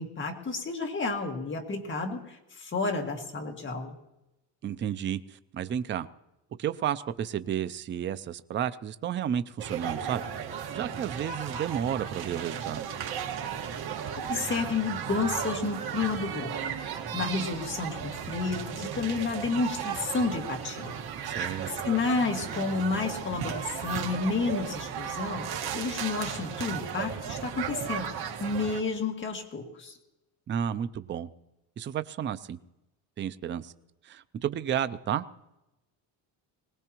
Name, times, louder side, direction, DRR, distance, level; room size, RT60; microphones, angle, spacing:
voice 1, 0.0-4.0 14.3-16.6 17.1-21.0 21.4-28.1 28.4-30.0, left 4 dB, 25° left, 2 dB, 1.9 m, -31 dB
voice 2, 4.6-6.1 6.6-12.9 21.2-21.7 30.5-31.3 31.8-32.6 33.2-33.7 34.0-35.3, right 9 dB, 30° right, 13 dB, 0.4 m, -32 dB
sound 1, 9.6-28.8, right 8 dB, 60° right, 1.9 m, -35 dB
21.5 x 18.5 x 3.0 m, 0.95 s
cardioid pair, 155°, 42 cm